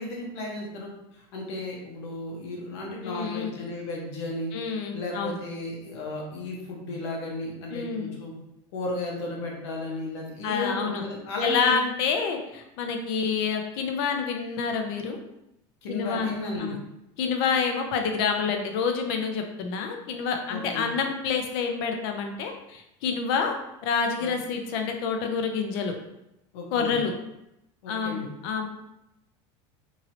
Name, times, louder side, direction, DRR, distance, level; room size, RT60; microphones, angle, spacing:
voice 1, 0.0-4.5 4.9-8.3 8.7-11.7 15.8-16.8 20.5-20.8 24.2-24.3 26.5-26.9 27.8-28.3, left 2 dB, 85° left, -1 dB, 1.0 m, -34 dB
voice 2, 3.0-3.5 4.5-5.4 7.7-8.1 10.4-11.0 11.4-15.2 15.9-16.3 16.6-16.8 17.2-23.5 23.8-25.9 26.7-27.1 27.9-28.7, left 5 dB, 65° left, 4 dB, 0.6 m, -28 dB
3.0 x 2.8 x 2.8 m, 0.86 s
supercardioid pair, 145°, 14 cm